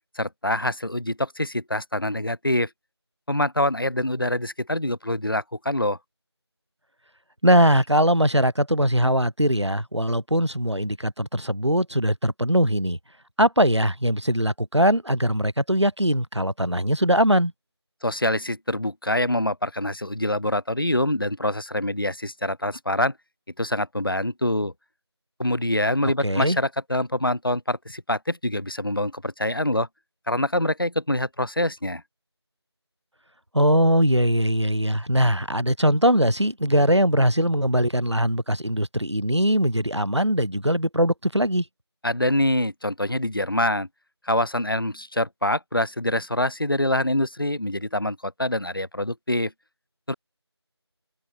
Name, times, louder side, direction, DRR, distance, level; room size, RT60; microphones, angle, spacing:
voice 1, 0.2-2.7 3.3-6.0 18.0-23.1 23.6-24.7 25.4-29.9 30.3-32.0 42.0-43.9 44.2-49.5 50.1-50.2, left 1 dB, 55° left, 2.6 m, -25 dB
voice 2, 7.4-13.0 13.4-17.5 26.0-26.6 33.5-41.6, equal, 85° right, 5.5 m, -21 dB
figure-of-eight pair, 175°, 14 cm